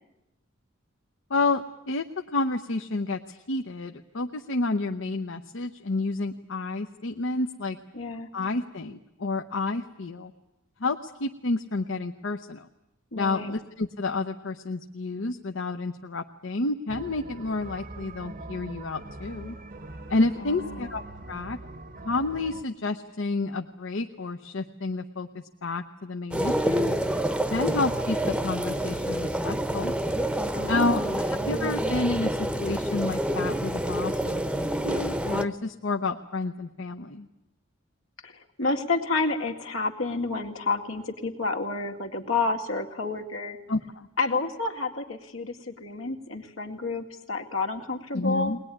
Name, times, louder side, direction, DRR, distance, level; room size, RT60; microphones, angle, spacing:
voice 1, 1.3-2.0 2.3-7.8 8.3-10.3 10.8-12.7 13.1-19.6 20.1-21.0 21.3-21.6 22.0-26.9 27.5-29.9 30.7-37.3 43.7-44.1 48.1-48.6, left 3 dB, 65° left, 6 dB, 0.8 m, -30 dB
voice 2, 7.9-8.3 13.1-13.5 20.4-20.9 30.5-31.2 38.2-43.6 44.2-48.5, left 3 dB, 85° left, 3 dB, 2.2 m, -30 dB
sound 1, 16.9-22.6, right 2 dB, 45° right, 1.0 m, -42 dB
sound 2, 26.3-35.5, right 1 dB, 5° right, 0.9 m, -27 dB
21.5 x 19.5 x 10.0 m, 0.92 s
head